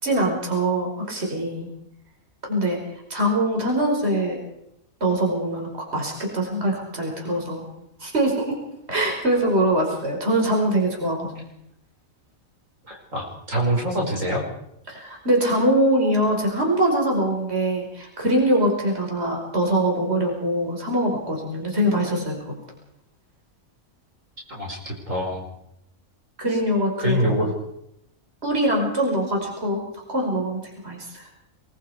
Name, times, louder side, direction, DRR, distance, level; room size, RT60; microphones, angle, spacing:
voice 1, 0.0-1.7 2.4-2.8 3.1-4.4 5.0-7.7 8.0-8.6 8.9-11.4 14.9-22.5 26.4-27.5 28.4-29.8 30.1-31.3, right 1 dB, 50° right, 0 dB, 5.6 m, -23 dB
voice 2, 12.9-14.4 24.5-25.5 27.0-27.5, equal, 65° right, -1 dB, 5.7 m, -25 dB
24.5 x 23.0 x 5.0 m, 0.79 s
omnidirectional pair, 1.4 m